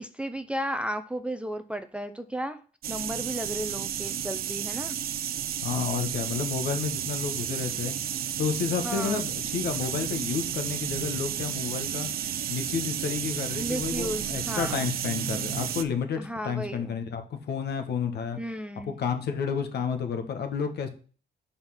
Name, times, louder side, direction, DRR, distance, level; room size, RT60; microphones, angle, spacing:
voice 1, 0.0-2.6 2.9-5.0 8.8-9.3 13.6-14.9 16.2-16.9 18.4-18.9, equal, 5° right, 0.5 m, -34 dB
sound 1, 2.8-15.8, right 9 dB, 50° right, 0.6 m, -32 dB
voice 2, 5.6-8.0 8.4-12.1 12.5-18.4 18.8-20.9, left 6 dB, 60° left, 1.2 m, -31 dB
5.5 x 4.3 x 5.7 m
cardioid pair, 120°, 19 cm